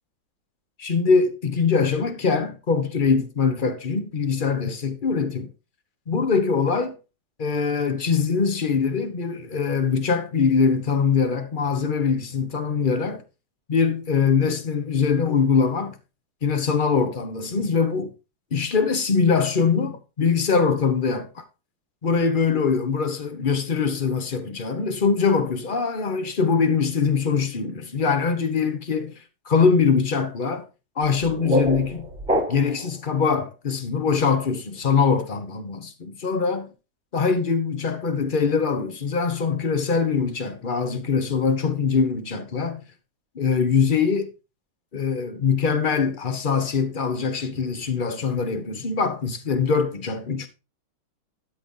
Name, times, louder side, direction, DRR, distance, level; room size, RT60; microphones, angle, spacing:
voice 1, 0.8-5.5 6.1-7.0 7.4-13.2 13.7-16.0 16.4-18.1 18.5-21.4 22.0-29.1 29.5-30.6 31.0-32.1 32.5-36.7 37.1-42.8 43.3-44.3 44.9-50.5, left 5 dB, 35° left, 1.0 m, -23 dB
sound 1, 31.0-32.9, right 1 dB, ahead, 3.7 m, -26 dB
12.5 x 5.5 x 3.9 m
omnidirectional pair, 2.2 m